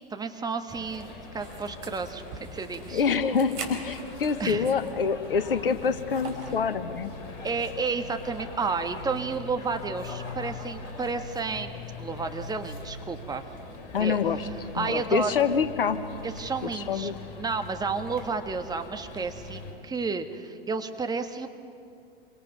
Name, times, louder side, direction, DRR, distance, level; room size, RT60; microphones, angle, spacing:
voice 1, 0.1-3.0 4.4-4.7 7.4-13.4 14.0-14.2 14.7-15.3 16.2-17.1 17.4-21.5, right 4 dB, 15° right, 6 dB, 1.4 m, -31 dB
sound 1, 0.7-19.7, left 3 dB, 45° left, 4.3 m, -42 dB
sound 2, 1.3-5.0 5.4-5.5 6.1-6.7, right 4 dB, 45° right, 4.6 m, -42 dB
voice 2, 2.9-7.1 13.9-14.5 14.8-16.0 16.6-17.1, left 6 dB, 70° left, 11 dB, 1.3 m, -26 dB
27.0 x 25.0 x 5.5 m, 2.4 s
figure-of-eight pair, 90°, 29 cm